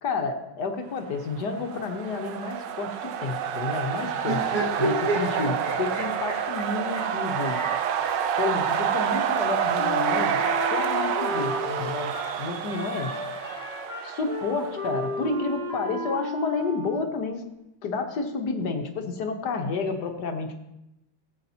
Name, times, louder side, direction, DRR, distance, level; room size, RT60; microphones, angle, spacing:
voice 1, 0.0-4.4 4.8-7.6 8.4-10.4 10.7-12.1 12.4-13.1 14.0-17.4 17.8-20.5, left 4 dB, 65° left, 4 dB, 1.6 m, -30 dB
sound 1, 1.3-15.1, right 8 dB, 75° right, 1.3 m, -28 dB
sound 2, 4.2-10.4 11.4-12.5, right 1 dB, 55° right, 2.0 m, -32 dB
Wind instrument woodwind instrument, 9.7-17.3, left 3 dB, 30° left, 1.0 m, -34 dB
16.0 x 8.1 x 2.8 m, 0.87 s
omnidirectional pair, 2.0 m